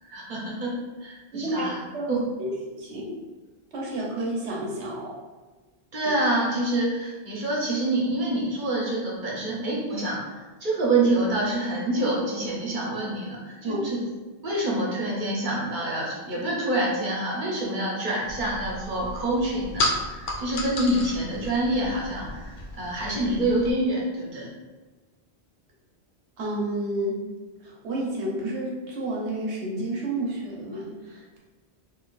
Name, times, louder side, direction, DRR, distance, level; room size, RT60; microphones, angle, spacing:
voice 1, 0.0-1.8 2.1-2.3 5.9-14.0 14.4-24.5, right 1 dB, 50° right, -4 dB, 1.0 m, -27 dB
voice 2, 1.3-3.2 3.7-5.2 13.6-13.9 26.4-27.2 27.6-31.4, right 1 dB, 85° right, -3 dB, 1.2 m, -30 dB
sound 1, 18.2-23.7, left 1 dB, 60° left, 0.6 m, -33 dB
3.9 x 2.8 x 2.5 m, 1.3 s
omnidirectional pair, 1.1 m